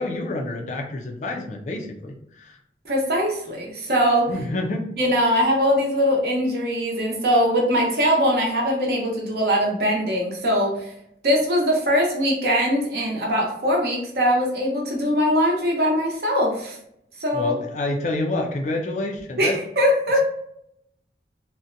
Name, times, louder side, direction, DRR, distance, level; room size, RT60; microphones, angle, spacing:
voice 1, 0.0-2.6 4.3-4.9 17.3-19.6, left 2 dB, 40° left, 2 dB, 0.3 m, -28 dB
voice 2, 2.8-4.3 5.0-10.9 11.2-16.8 17.2-17.5 19.4-20.2, equal, 55° right, -1 dB, 0.7 m, -21 dB
2.6 x 2.1 x 2.5 m, 0.75 s
head